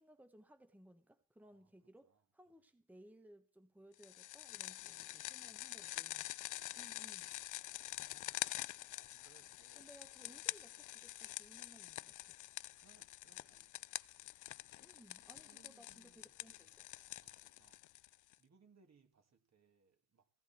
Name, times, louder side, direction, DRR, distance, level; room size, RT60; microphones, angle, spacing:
voice 1, 0.0-6.3 6.7-7.3 9.8-12.4 14.8-16.9, right 1 dB, 5° right, 1.2 m, -62 dB
voice 2, 2.0-2.6 4.9-6.1 6.5-6.9 7.7-9.9 12.8-13.9 15.3-16.8 17.2-17.9 18.4-20.3, right 5 dB, 45° right, 2.6 m, -72 dB
sound 1, 4.0-18.3, left 15 dB, 55° left, 0.5 m, -46 dB
sound 2, 4.4-16.9, right 5 dB, 70° right, 6.4 m, -82 dB
16.0 x 10.5 x 4.5 m
supercardioid pair, 65°, 36 cm